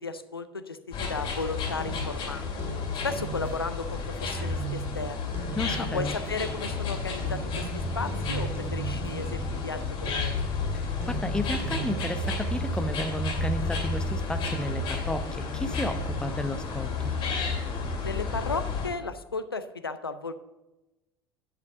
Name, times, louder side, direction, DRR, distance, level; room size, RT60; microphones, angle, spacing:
voice 1, 0.0-2.4 3.0-5.4 5.8-10.3 18.0-20.3, left 4 dB, 85° left, 11 dB, 0.6 m, -35 dB
sound 1, 0.9-18.9, left 3 dB, 40° left, 2.5 m, -31 dB
sound 2, 1.2-4.0 4.4-6.8 7.2-12.5, right 6 dB, 20° right, 2.3 m, -40 dB
voice 2, 5.5-6.2 10.7-17.1, left 1 dB, 5° left, 9 dB, 0.8 m, -33 dB
10.5 x 5.1 x 6.7 m, 1.0 s
figure-of-eight pair, 70°, 12 cm